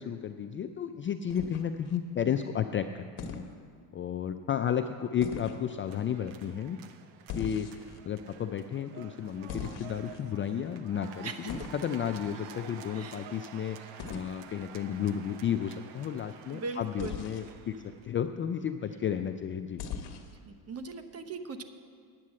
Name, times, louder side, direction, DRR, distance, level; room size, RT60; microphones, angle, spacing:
voice 1, 0.0-3.4 3.9-6.8 7.3-19.8, left 8 dB, 30° left, 8 dB, 0.3 m, -33 dB
sound 1, 1.3-2.0 3.2-3.5 5.2-5.6 7.3-8.0 9.5-10.2 11.5-11.8 14.0-14.3 17.0-17.5 19.8-20.4, left 5 dB, 55° left, 1.4 m, -40 dB
sound 2, 5.9-18.3, right 8 dB, 70° right, 0.9 m, -50 dB
voice 2, 16.5-17.2 20.7-21.7, right 3 dB, 30° right, 8 dB, 1.0 m, -39 dB
9.8 x 8.4 x 7.5 m, 2.2 s
supercardioid pair, 95°, 46 cm